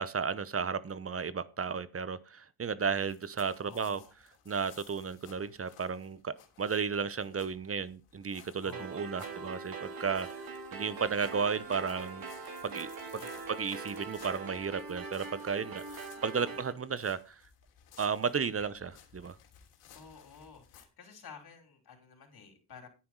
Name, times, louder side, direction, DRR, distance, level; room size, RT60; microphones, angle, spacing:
voice 1, 0.0-4.0 4.5-10.3 10.7-12.3 12.6-12.9 13.5-17.4 18.0-19.4, right 6 dB, 30° right, 0.9 m, -34 dB
sound 1, 3.0-20.8, left 9 dB, 80° left, 3.3 m, -58 dB
voice 2, 3.6-4.1 8.6-9.5 13.1-13.5 16.1-16.6 18.6-18.9 19.9-22.9, left 5 dB, 50° left, 5.0 m, -53 dB
sound 2, 8.7-16.7, right 4 dB, 45° right, 3.4 m, -42 dB
10.5 x 9.4 x 4.7 m
cardioid pair, 85°, 49 cm